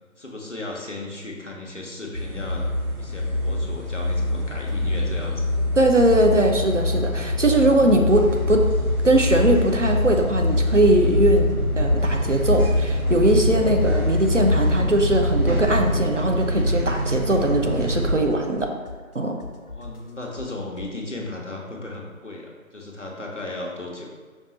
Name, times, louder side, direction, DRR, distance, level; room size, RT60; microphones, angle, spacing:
voice 1, 0.2-2.7 3.0-5.6 19.7-24.1, left 2 dB, 55° left, -1 dB, 0.8 m, -35 dB
sound 1, 2.1-18.1, left 1 dB, 80° right, 1.2 m, -23 dB
sound 2, 3.6-3.9 4.1-6.1 6.3-8.2 8.5-10.4 10.7-14.8 15.0-20.9, left 3 dB, 90° left, 1.0 m, -40 dB
voice 2, 5.8-8.7 9.0-11.5 11.8-18.7 19.1-19.4, right 1 dB, 60° right, 3 dB, 0.5 m, -20 dB
5.2 x 2.4 x 4.1 m, 1.4 s
figure-of-eight pair, 175°, 43 cm